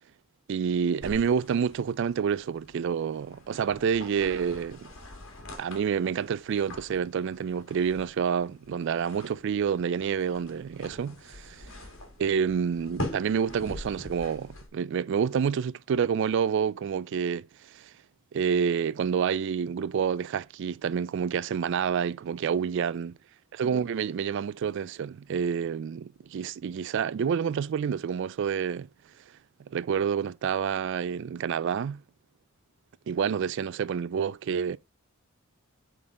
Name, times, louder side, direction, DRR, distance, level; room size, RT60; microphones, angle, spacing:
voice 1, 0.5-4.9 5.6-11.7 12.2-17.9 18.3-23.2 23.5-28.9 29.7-32.0 33.1-34.8, right 7 dB, 55° right, 0.3 m, -28 dB
Book opening, 1.0-14.7, left 1 dB, 65° left, 1.8 m, -43 dB
7.8 x 3.9 x 3.7 m
head